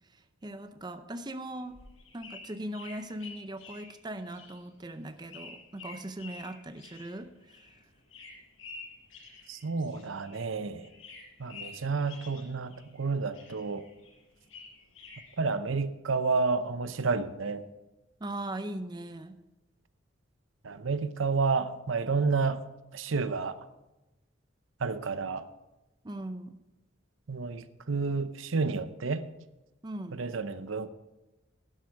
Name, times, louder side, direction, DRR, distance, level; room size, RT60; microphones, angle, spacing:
voice 1, 0.1-1.8 2.1-7.7 18.2-19.4 26.0-26.6 29.8-30.3, right 1 dB, 20° right, 9 dB, 0.6 m, -40 dB
sound 1, 1.5-10.5 10.8-13.0 13.3-15.4, left 4 dB, 85° left, 5.4 m, -49 dB
voice 2, 9.5-10.9 11.4-13.9 15.4-17.6 20.6-22.6 22.9-23.6 24.8-25.4 27.3-29.3 30.1-30.9, right 4 dB, 80° right, 12 dB, 0.7 m, -30 dB
11.5 x 11.0 x 4.7 m, 1.0 s
head